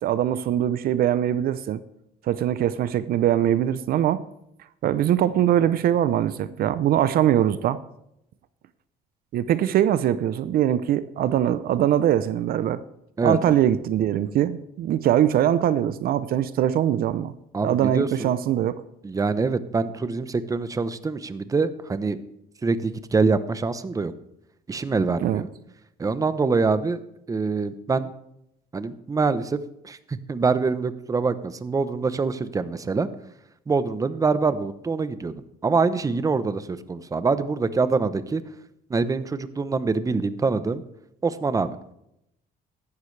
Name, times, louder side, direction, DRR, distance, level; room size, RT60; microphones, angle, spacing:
voice 1, 0.0-1.8 2.3-4.2 4.8-7.8 9.3-12.8 13.2-17.3 17.6-18.8 25.2-25.4, right 11 dB, 60° right, 15 dB, 0.6 m, -22 dB
voice 2, 13.2-13.6 17.5-18.3 19.0-22.2 22.6-24.1 24.7-25.5 26.0-27.0 27.3-28.1 28.7-29.6 29.8-33.1 33.7-35.3 35.6-38.4 38.9-40.8 41.2-41.8, right 4 dB, 20° right, 13 dB, 0.8 m, -25 dB
15.5 x 11.5 x 3.3 m, 0.79 s
cardioid pair, 110°, 17 cm